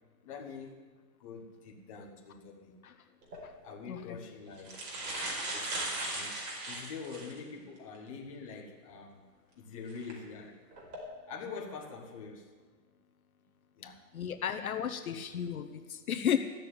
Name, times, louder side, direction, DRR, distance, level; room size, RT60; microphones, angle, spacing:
voice 1, 0.2-0.8 1.2-2.8 3.6-4.8 5.5-9.2 9.6-10.6 11.3-12.5 13.8-14.0 15.0-15.1, left 5 dB, 20° left, -2 dB, 1.1 m, -45 dB
sound 1, 3.2-3.4 4.2-4.3 4.6-7.4 7.9-8.0 9.9-10.1 10.7-11.0, right 2 dB, 90° right, 4.7 m, -37 dB
voice 2, 3.9-4.2 14.1-16.4, left 9 dB, 60° left, 6 dB, 1.0 m, -33 dB
13.5 x 6.8 x 8.9 m, 1.4 s
hypercardioid pair, 180°, 49 cm